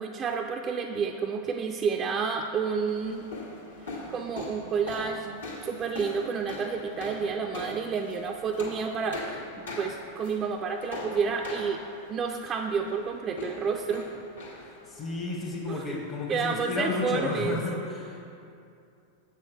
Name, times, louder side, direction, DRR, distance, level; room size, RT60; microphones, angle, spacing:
voice 1, 0.0-3.3 4.1-11.8 12.1-14.1 15.7-16.0 16.3-17.6, right 5 dB, 25° right, 2 dB, 0.4 m, -30 dB
sound 1, 2.9-17.1, left 2 dB, 70° left, 1.3 m, -42 dB
voice 2, 14.6-18.3, left 3 dB, 30° left, -3 dB, 0.9 m, -32 dB
7.6 x 6.1 x 4.5 m, 2.6 s
figure-of-eight pair, 90°, 0 cm